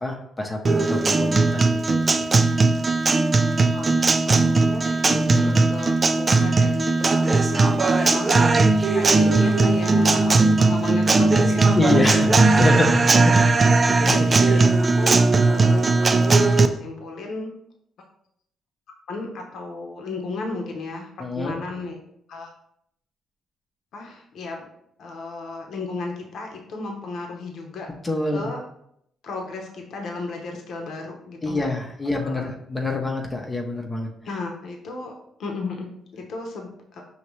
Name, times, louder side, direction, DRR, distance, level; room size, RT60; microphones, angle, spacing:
voice 1, 0.0-2.0 5.2-5.6 11.8-12.9 13.1-13.4 14.0-14.3 21.2-21.6 28.0-28.5 31.4-34.1, left 2 dB, 20° left, 2 dB, 0.7 m, -26 dB
Guitar, 0.6-16.7, right 3 dB, 35° right, 0.3 m, -18 dB
voice 2, 3.7-12.2 12.5-12.9 14.0-17.5 19.1-22.0 22.3-22.5 23.9-24.7 25.0-27.9 28.3-28.6 29.2-31.7 32.0-32.5 34.2-35.1 35.4-37.0, left 3 dB, 70° left, 2 dB, 0.8 m, -34 dB
5.3 x 2.8 x 3.1 m, 0.71 s
cardioid pair, 90°, 0 cm